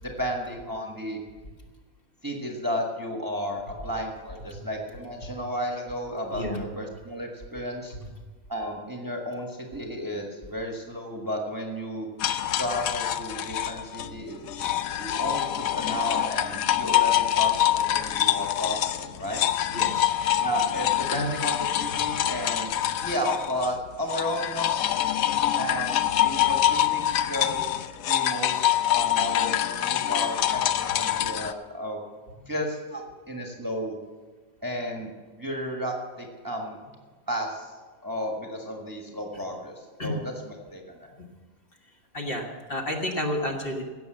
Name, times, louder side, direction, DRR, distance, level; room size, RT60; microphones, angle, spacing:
voice 1, 0.0-1.2 2.2-7.9 8.5-12.1 12.6-14.7 15.0-19.4 20.4-22.7 23.0-24.8 25.6-32.0 32.5-34.0 34.6-36.8 37.3-37.7 38.0-41.1, equal, 15° right, 1 dB, 1.4 m, -33 dB
voice 2, 6.3-6.6 8.0-8.1 19.7-20.1 21.1-21.3 25.2-25.3 32.4-32.5 40.0-40.2 42.1-43.8, left 1 dB, 40° left, 0 dB, 1.8 m, -31 dB
sound 1, 12.2-23.8 24.1-31.5, left 11 dB, 80° left, 1.1 m, -25 dB
16.5 x 7.0 x 7.7 m, 1.4 s
omnidirectional pair, 1.5 m